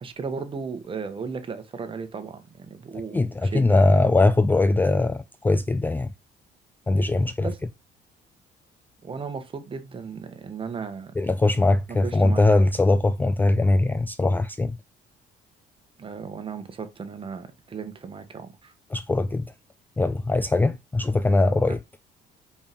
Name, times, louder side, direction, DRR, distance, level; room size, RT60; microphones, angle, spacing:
voice 1, 0.0-3.9 7.4-7.6 9.0-11.1 12.0-12.5 16.0-18.7 21.7-21.8, right 5 dB, 30° right, 1.5 m, -35 dB
voice 2, 3.1-6.1 6.9-7.5 11.2-14.8 18.9-19.4 20.0-21.8, left 2 dB, 10° left, 0.4 m, -21 dB
5.3 x 4.8 x 5.3 m
cardioid pair, 110°, 17 cm